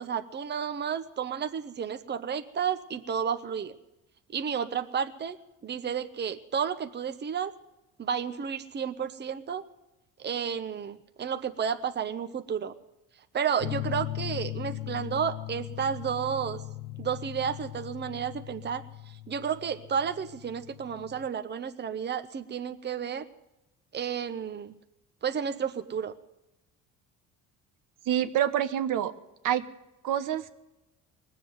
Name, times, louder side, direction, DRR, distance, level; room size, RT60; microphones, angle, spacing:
voice 1, 0.0-3.8 4.3-5.4 5.6-7.5 8.0-9.6 10.2-12.7 13.3-16.6 17.0-23.3 23.9-24.8 25.2-26.1, right 7 dB, 30° right, 9 dB, 1.0 m, -32 dB
sound 1, 13.6-21.3, left 17 dB, 80° left, 0.5 m, -39 dB
voice 2, 28.1-29.1 29.4-29.7 30.0-30.5, right 10 dB, 65° right, 10 dB, 1.1 m, -26 dB
19.5 x 7.8 x 9.4 m, 0.94 s
supercardioid pair, 85°, 34 cm